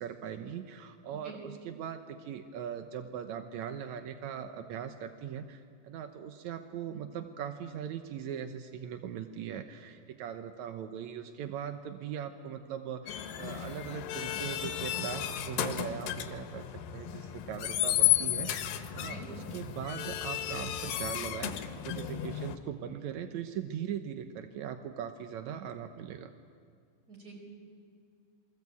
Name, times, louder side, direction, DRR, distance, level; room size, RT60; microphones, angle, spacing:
voice 1, 0.0-16.6 16.9-26.3, right 8 dB, 75° right, 7 dB, 1.7 m, -40 dB
sound 1, 13.1-22.6, left 12 dB, 70° left, 2.7 m, -33 dB
voice 2, 19.0-19.3 27.1-27.3, right 3 dB, 25° right, 1 dB, 5.1 m, -47 dB
28.0 x 21.5 x 8.3 m, 2.2 s
omnidirectional pair, 4.5 m